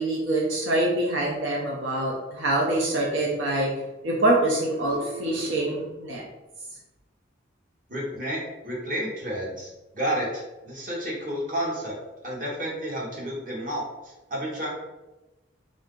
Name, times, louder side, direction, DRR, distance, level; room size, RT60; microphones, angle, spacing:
voice 1, 0.0-3.7 4.0-6.2, right 1 dB, 75° right, -2 dB, 0.7 m, -25 dB
voice 2, 7.9-9.7 9.9-11.9 12.2-14.7, equal, 45° right, -3 dB, 1.1 m, -31 dB
3.7 x 2.7 x 3.7 m, 1.0 s
head